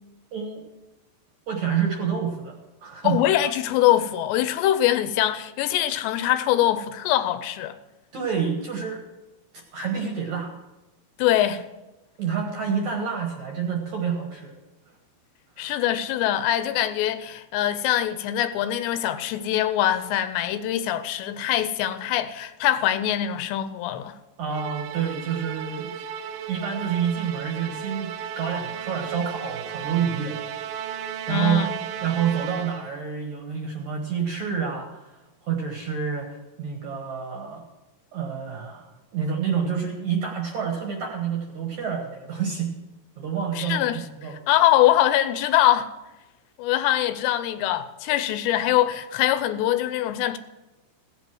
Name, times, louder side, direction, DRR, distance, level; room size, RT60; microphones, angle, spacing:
voice 1, 0.3-0.6 1.5-3.2 8.1-9.0 9.7-10.5 12.2-14.5 15.6-15.7 24.4-26.0 26.5-31.6 32.0-37.6 38.1-42.7 43.2-44.4, right 7 dB, 60° right, 2.1 m, -28 dB
voice 2, 3.0-7.8 11.2-11.6 15.6-24.2 31.3-31.8 43.6-45.9 46.6-50.4, left 12 dB, 85° left, 2.9 m, -23 dB
Musical instrument, 24.5-33.0, right 9 dB, 85° right, 3.0 m, -34 dB
16.0 x 8.2 x 6.2 m
omnidirectional pair, 5.0 m